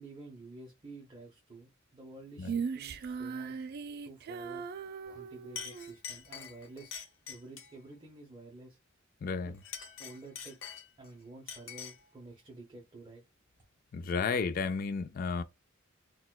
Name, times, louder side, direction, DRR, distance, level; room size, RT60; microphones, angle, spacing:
voice 1, 0.0-3.5 4.0-4.6 5.1-6.9 7.3-8.8 9.4-9.5 10.0-13.2, right 2 dB, 25° right, 0.7 m, -50 dB
Female singing, 2.4-6.0, right 6 dB, 50° right, 0.3 m, -38 dB
Chink clink, 5.1-5.2 5.6-7.8 9.5-11.1 11.5-12.1, left 7 dB, 75° left, 0.9 m, -45 dB
voice 2, 9.2-9.5 13.9-15.4, left 5 dB, 45° left, 0.3 m, -32 dB
4.1 x 2.2 x 2.2 m
head